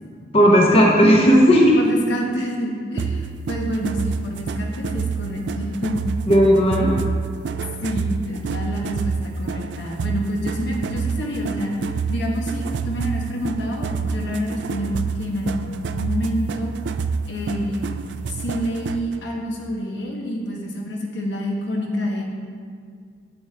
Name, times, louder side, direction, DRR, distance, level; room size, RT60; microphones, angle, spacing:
voice 1, 0.3-1.8 6.3-7.0, equal, 30° left, -2 dB, 0.9 m, -14 dB
voice 2, 1.8-6.0 7.8-16.7 17.3-17.9 18.3-22.2, equal, 75° left, 0 dB, 1.2 m, -28 dB
sound 1, 3.0-19.2, right 5 dB, 70° right, 0.3 m, -28 dB
8.5 x 7.9 x 3.3 m, 2.1 s
head